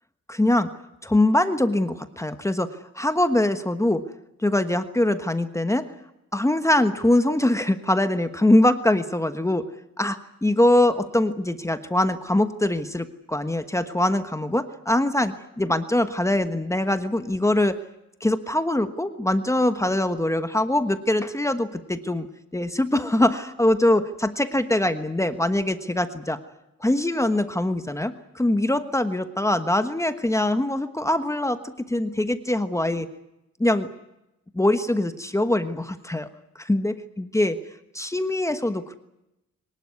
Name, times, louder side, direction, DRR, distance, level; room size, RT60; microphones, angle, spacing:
voice 1, 0.3-0.7 1.0-4.0 4.4-5.9 6.3-9.6 10.0-17.8 18.2-22.3 22.5-26.4 26.8-33.1 33.6-33.9 34.5-36.3 36.6-37.6 37.9-38.9, left 1 dB, 10° left, 9 dB, 1.3 m, -23 dB
23.5 x 19.5 x 9.6 m, 0.89 s
wide cardioid pair, 150°, 30 cm